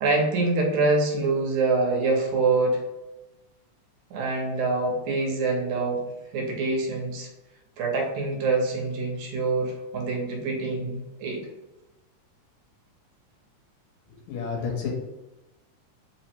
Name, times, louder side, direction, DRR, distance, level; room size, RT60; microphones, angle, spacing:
voice 1, 0.0-2.8 4.1-6.0 6.3-7.3 7.8-11.4, right 3 dB, 80° right, 0 dB, 2.3 m, -25 dB
voice 2, 14.3-14.9, left 6 dB, 75° left, -2 dB, 2.0 m, -30 dB
5.0 x 2.1 x 4.3 m, 0.99 s
omnidirectional pair, 3.4 m